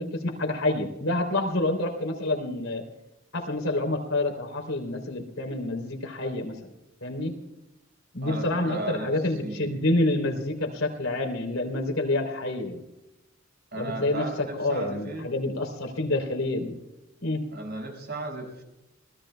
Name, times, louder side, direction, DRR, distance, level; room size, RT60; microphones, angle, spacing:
voice 1, 0.0-2.8 3.3-6.6 7.0-7.3 8.1-12.8 13.8-14.3 14.5-16.8 17.2-17.4, left 2 dB, 85° left, 3 dB, 3.3 m, -28 dB
voice 2, 8.2-9.1 9.4-9.8 13.7-15.3 17.5-18.6, right 2 dB, 55° right, 2 dB, 5.4 m, -35 dB
26.0 x 19.5 x 2.2 m, 0.93 s
head